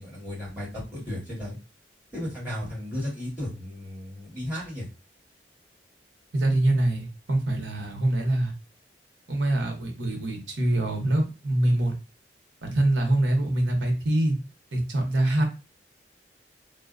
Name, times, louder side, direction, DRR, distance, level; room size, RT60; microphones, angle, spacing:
voice 1, 0.0-1.6 2.1-4.9, left 1 dB, 10° right, -7 dB, 1.4 m, -34 dB
voice 2, 6.3-8.5 9.3-11.9 12.6-14.4 14.7-15.4, right 1 dB, 80° right, 3 dB, 0.7 m, -24 dB
2.5 x 2.1 x 2.4 m, 0.30 s
head